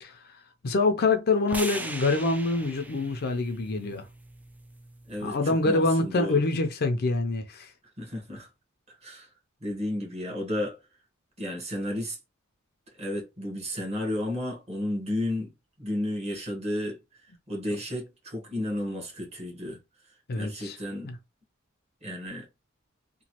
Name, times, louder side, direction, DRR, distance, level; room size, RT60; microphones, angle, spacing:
voice 1, 0.0-0.3 0.6-4.1 5.2-7.7 20.3-20.8 21.0-21.2, left 3 dB, 50° left, 0.5 m, -25 dB
sound 1, 1.5-5.7, right 2 dB, 10° right, 0.4 m, -40 dB
voice 2, 5.1-6.4 8.0-8.5 8.9-9.3 9.6-10.8 11.4-12.2 13.0-15.5 15.8-19.8 20.3-21.1 22.0-22.5, left 1 dB, 30° right, 1.1 m, -33 dB
3.0 x 2.2 x 2.9 m
head